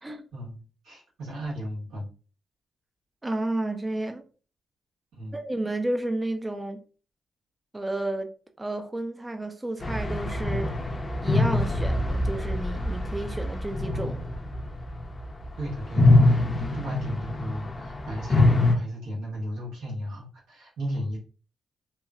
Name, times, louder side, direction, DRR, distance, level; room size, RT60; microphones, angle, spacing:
voice 1, 0.3-2.1 5.1-5.4 15.6-21.2, equal, 90° right, 1.3 m, -35 dB
voice 2, 3.2-4.2 5.3-6.8 7.7-8.3 8.6-10.7 11.2-14.2, right 1 dB, 20° right, 0.4 m, -31 dB
sound 1, 9.8-15.4 15.8-18.7, left 2 dB, 35° left, 0.6 m, -24 dB
3.0 x 2.2 x 2.4 m
supercardioid pair, 55°, 0 cm